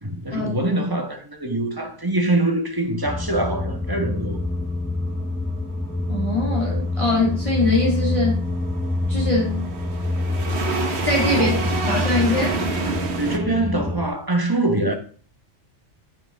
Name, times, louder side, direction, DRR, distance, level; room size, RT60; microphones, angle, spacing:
voice 1, 0.0-4.4 11.3-11.7 12.6-12.7 13.1-15.0, right 2 dB, 20° right, 1.5 m, -24 dB
sound 1, 3.0-14.1, left 2 dB, 5° left, 0.7 m, -26 dB
voice 2, 6.1-8.4 9.1-9.6 11.0-11.5 11.9-12.6, left 2 dB, 25° left, 2.2 m, -22 dB
sound 2, 6.5-13.4, right 4 dB, 65° right, 1.5 m, -29 dB
13.5 x 6.8 x 3.6 m
omnidirectional pair, 1.2 m